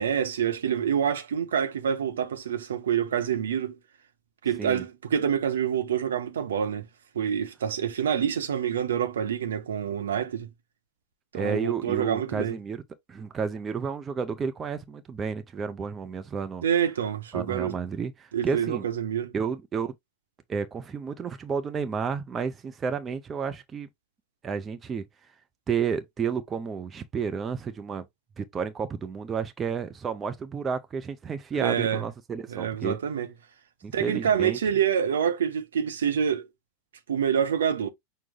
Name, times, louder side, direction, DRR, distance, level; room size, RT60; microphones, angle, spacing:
voice 1, 0.0-3.8 4.4-6.9 7.1-10.5 11.3-12.6 16.6-17.8 18.3-19.3 31.6-32.0 32.5-33.3 33.9-36.5 37.1-37.9, right 8 dB, 65° right, 0.9 m, -27 dB
voice 2, 11.3-12.8 13.1-16.6 17.3-18.9 19.3-19.9 20.5-23.9 24.4-25.0 25.7-28.0 28.4-33.0 33.8-34.6, right 6 dB, 20° right, 0.6 m, -31 dB
6.1 x 2.2 x 3.6 m
figure-of-eight pair, 90°, 0 cm